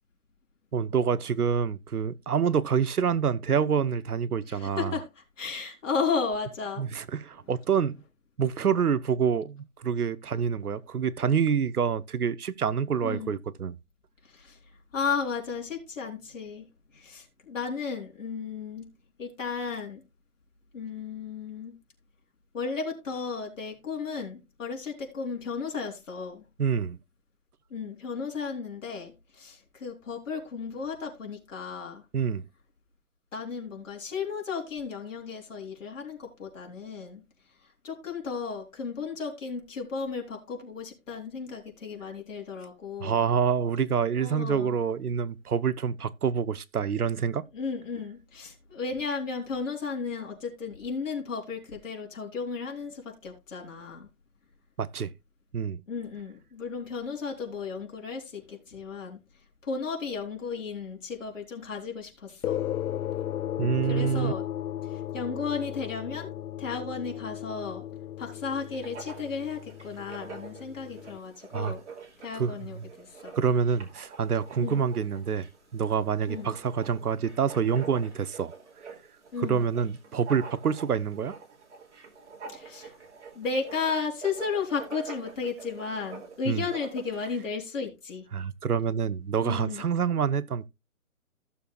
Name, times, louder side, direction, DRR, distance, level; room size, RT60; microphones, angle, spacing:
voice 1, 0.7-4.9 6.8-8.0 8.4-13.7 26.6-27.0 32.1-32.4 43.0-47.5 54.8-55.1 55.5-55.8 63.6-64.3 71.5-71.7 72.3-72.7 73.4-78.5 79.4-81.4 86.5-86.7 88.3-90.7, right 7 dB, 90° right, 0.9 m, -27 dB
voice 2, 4.5-5.1 5.4-6.9 13.0-13.3 14.3-14.6 14.9-16.6 16.9-18.9 19.2-20.0 20.7-21.7 22.5-26.4 27.7-32.0 33.3-37.2 37.8-43.2 44.2-44.8 47.5-54.1 55.9-59.2 59.6-62.6 63.6-64.4 64.9-66.3 66.6-67.9 68.2-71.8 72.2-73.4 74.6-74.8 76.3-76.5 79.3-79.7 82.5-82.9 83.3-88.3 89.4-89.8, left 5 dB, 60° left, 3.8 m, -34 dB
sound 1, 62.4-71.2, left 11 dB, 85° left, 0.5 m, -35 dB
Writing, 68.5-87.3, right 5 dB, 50° right, 2.8 m, -46 dB
15.5 x 6.9 x 2.3 m
hypercardioid pair, 165°, 44 cm